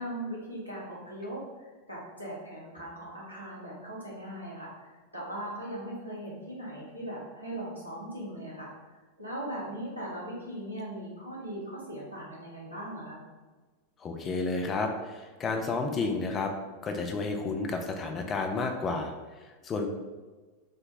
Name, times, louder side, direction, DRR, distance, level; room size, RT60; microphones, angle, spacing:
voice 1, 0.0-8.7 9.2-13.2, right 1 dB, 85° right, -5 dB, 0.9 m, -39 dB
voice 2, 14.0-16.5 16.8-19.1 19.4-19.9, left 3 dB, 25° left, 4 dB, 0.4 m, -31 dB
3.8 x 2.1 x 2.6 m, 1.3 s
figure-of-eight pair, 90°, 0 cm